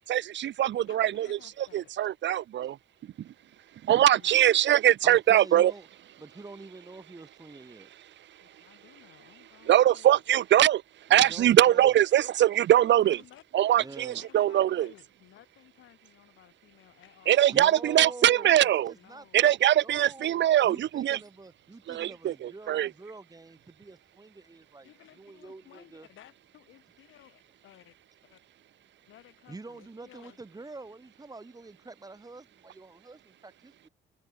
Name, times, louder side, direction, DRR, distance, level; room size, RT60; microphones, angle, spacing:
voice 1, 0.1-1.4 1.7-2.8 3.8-5.7 9.7-10.8 11.1-13.2 13.5-14.9 17.3-18.9 19.3-21.2 21.9-22.9, right 12 dB, 65° right, 0.9 m, -22 dB
voice 2, 0.9-1.9 4.1-4.4 8.4-10.2 13.0-13.9 14.2-19.6 24.8-28.0 28.2-28.4 29.1-30.4, left 13 dB, 80° left, 5.7 m, -56 dB
voice 3, 5.0-5.8 6.2-7.9 11.1-11.8 13.8-14.2 17.5-18.5 18.8-19.5 19.8-24.9 25.2-26.1 29.5-33.9, right 3 dB, 20° right, 1.5 m, -46 dB
cardioid pair, 90°, 20 cm